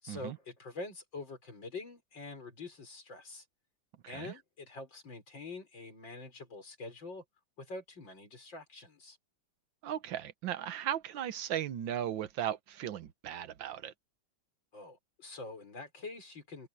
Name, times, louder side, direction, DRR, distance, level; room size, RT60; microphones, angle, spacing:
voice 1, 0.0-3.4 4.1-7.2 7.6-9.2 14.7-16.7, left 3 dB, 65° left, 6.8 m, -45 dB
voice 2, 9.8-13.9, right 10 dB, 70° right, 1.7 m, -37 dB
omnidirectional pair, 2.2 m